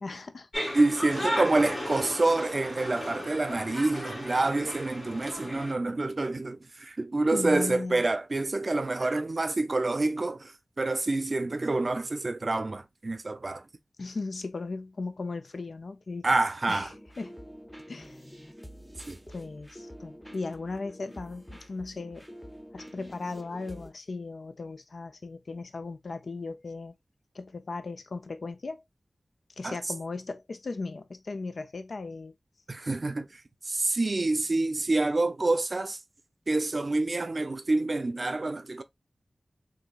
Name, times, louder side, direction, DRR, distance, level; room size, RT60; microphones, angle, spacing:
voice 1, 0.0-0.7 7.3-8.0 14.0-16.3 16.7-16.9 17.2-17.4 17.9-18.2 19.3-22.2 22.7-26.9 27.3-28.8 29.6-32.3, left 3 dB, 75° left, 0.4 m, -37 dB
sound 1, 0.5-5.7, equal, 40° left, 2.2 m, -35 dB
voice 2, 0.7-13.7 16.2-16.9 19.1-19.2 29.6-29.8 32.7-36.0 36.5-38.8, right 2 dB, 55° right, 0.5 m, -27 dB
sound 2, 16.8-23.9, equal, 10° left, 0.7 m, -47 dB
3.8 x 2.6 x 2.3 m
cardioid pair, 50°, 0 cm